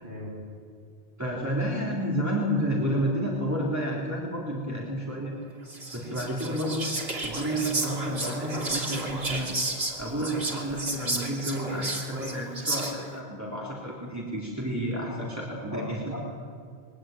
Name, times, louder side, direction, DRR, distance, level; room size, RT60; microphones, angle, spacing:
voice 1, 0.0-0.3 15.1-15.2 15.5-16.3, left 1 dB, 55° left, -3 dB, 7.9 m, -37 dB
voice 2, 1.2-5.3 5.9-6.9 7.2-9.5 10.0-16.1, equal, 15° right, -5 dB, 3.5 m, -30 dB
Whispering, 5.7-13.2, right 2 dB, 80° right, 3.3 m, -32 dB
22.5 x 17.5 x 9.3 m, 2.2 s
omnidirectional pair, 1.0 m